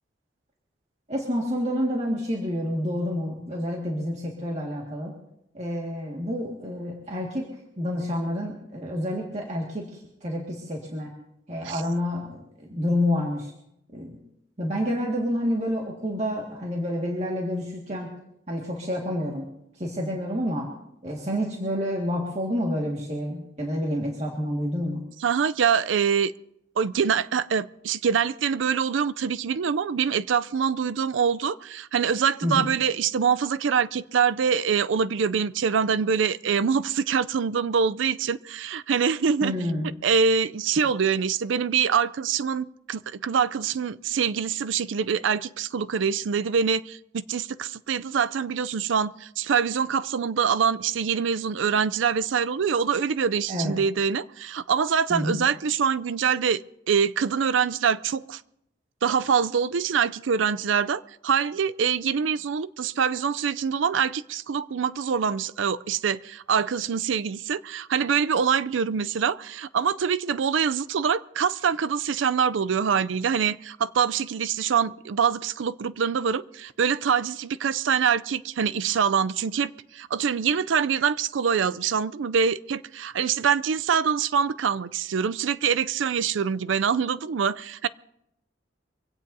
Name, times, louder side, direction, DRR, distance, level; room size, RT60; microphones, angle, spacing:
voice 1, 1.1-5.1 5.5-7.4 7.8-11.1 11.5-13.5 13.9-14.2 14.6-18.1 18.5-19.5 19.8-20.7 21.0-25.0 32.4-32.7 39.4-39.9 53.5-53.7 55.1-55.4, equal, 35° right, 1.8 m, -28 dB
voice 2, 25.2-26.3 26.8-39.5 40.0-56.6 56.9-58.4 59.0-87.9, right 6 dB, 90° right, 0.4 m, -24 dB
24.0 x 17.0 x 2.7 m
head